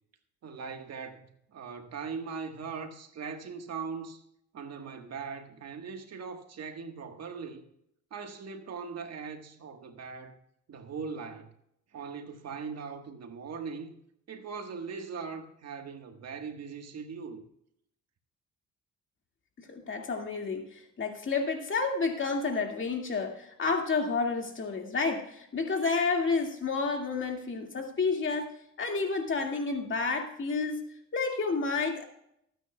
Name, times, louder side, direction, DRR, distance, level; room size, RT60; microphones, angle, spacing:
voice 1, 0.4-4.2 4.5-7.6 8.1-10.4 10.7-11.5 11.9-14.0 14.3-17.4, right 5 dB, 60° right, 1.5 m, -40 dB
voice 2, 19.6-28.5 28.8-30.8 31.1-32.0, left 4 dB, 40° left, 2.2 m, -30 dB
23.5 x 9.2 x 2.3 m
cardioid pair, 90°, 30 cm